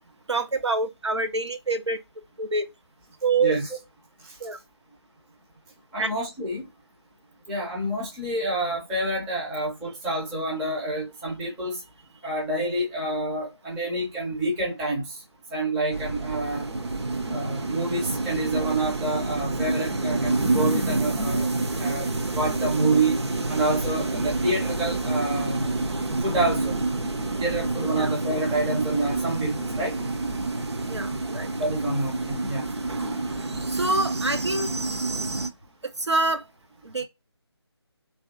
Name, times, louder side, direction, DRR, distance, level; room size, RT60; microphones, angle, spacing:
voice 1, 0.3-2.0 2.4-2.6 3.2-3.5 4.4-4.6 6.0-6.1 27.9-28.1 30.9-31.5 33.7-34.7 36.0-36.4 36.8-37.0, right 3 dB, 90° right, 1.3 m, -26 dB
voice 2, 5.9-6.7 7.5-11.8 12.2-15.2 15.5-16.7 17.3-23.2 23.5-25.6 26.2-26.8 27.4-30.0 31.6-32.6, right 2 dB, 5° right, 0.5 m, -28 dB
sound 1, 15.9-35.5, right 2 dB, 75° right, 1.3 m, -28 dB
3.4 x 3.3 x 4.0 m
figure-of-eight pair, 165°, 14 cm